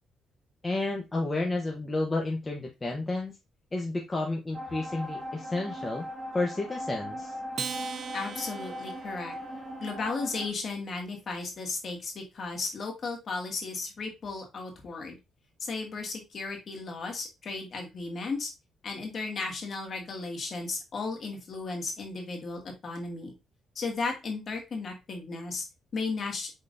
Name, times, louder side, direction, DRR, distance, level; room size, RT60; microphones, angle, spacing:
voice 1, 0.6-3.3 3.7-6.1 6.3-7.3, left 2 dB, 25° left, 0 dB, 0.9 m, -31 dB
sound 1, 4.5-10.5, equal, 10° right, 1.5 m, -39 dB
Acoustic guitar, 7.5-10.2, right 6 dB, 50° right, 0.5 m, -40 dB
voice 2, 8.1-9.3 9.8-15.2 15.6-18.5 18.8-23.3 23.8-25.6 25.9-26.5, left 3 dB, 50° left, 1 dB, 2.1 m, -35 dB
5.5 x 3.7 x 2.6 m, 0.24 s
cardioid pair, 90°, 0 cm